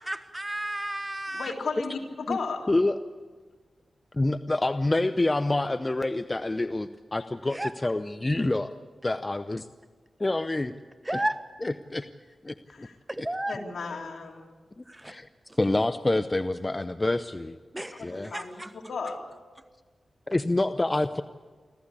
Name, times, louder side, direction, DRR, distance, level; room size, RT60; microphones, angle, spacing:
voice 1, 0.0-1.5 7.5-7.9 11.0-11.4 13.1-13.5 14.8-15.2 15.5-15.6 17.7-18.7, right 1 dB, 15° right, 11 dB, 1.2 m, -33 dB
voice 2, 1.3-2.6 12.7-13.0 13.5-14.5 18.0-18.6 18.9-19.2, left 4 dB, 80° left, 0 dB, 3.5 m, -34 dB
voice 3, 4.1-8.7 9.0-9.7 10.2-10.7 11.9-12.1 12.4-12.9 14.8-15.3 15.6-17.6 18.0-18.3 20.3-21.2, left 2 dB, 25° left, 11 dB, 0.6 m, -27 dB
26.0 x 14.5 x 8.4 m, 1.5 s
cardioid pair, 65°, 0 cm